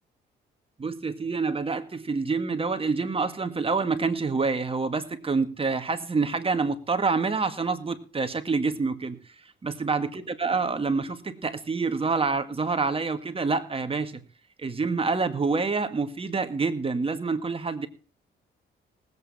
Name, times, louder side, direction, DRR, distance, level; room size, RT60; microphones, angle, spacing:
voice 1, 0.8-9.2 9.6-14.2 14.6-17.9, right 4 dB, 30° right, 9 dB, 1.9 m, -27 dB
19.5 x 8.5 x 4.3 m, 0.38 s
cardioid pair, 90°, 20 cm